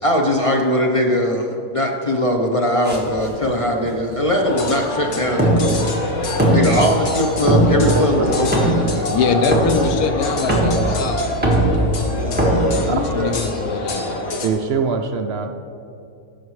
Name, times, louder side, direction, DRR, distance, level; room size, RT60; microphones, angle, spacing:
voice 1, 0.0-5.9 6.5-9.1 12.0-12.9 13.2-13.3, equal, 40° left, 1 dB, 0.4 m, -21 dB
sound 1, 2.8-13.5, right 1 dB, 5° right, 1.5 m, -21 dB
sound 2, 4.4-14.5, left 2 dB, 60° left, 1.3 m, -27 dB
voice 2, 7.9-8.3 12.8-13.0 14.4-15.5, right 5 dB, 65° right, 5 dB, 0.6 m, -23 dB
voice 3, 9.1-11.2 12.7-14.2, left 5 dB, 85° left, 7 dB, 1.2 m, -23 dB
16.0 x 6.5 x 3.2 m, 2.6 s
omnidirectional pair, 1.5 m